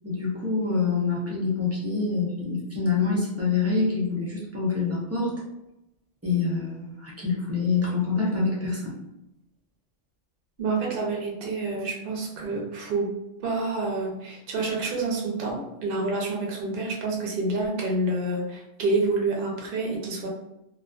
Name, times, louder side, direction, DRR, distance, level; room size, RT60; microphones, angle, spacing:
voice 1, 0.0-5.3 6.2-8.9, left 4 dB, 20° right, -6 dB, 0.4 m, -26 dB
voice 2, 10.6-13.1 13.4-20.3, right 3 dB, 55° right, -2 dB, 0.8 m, -28 dB
2.5 x 2.3 x 2.2 m, 0.88 s
omnidirectional pair, 1.3 m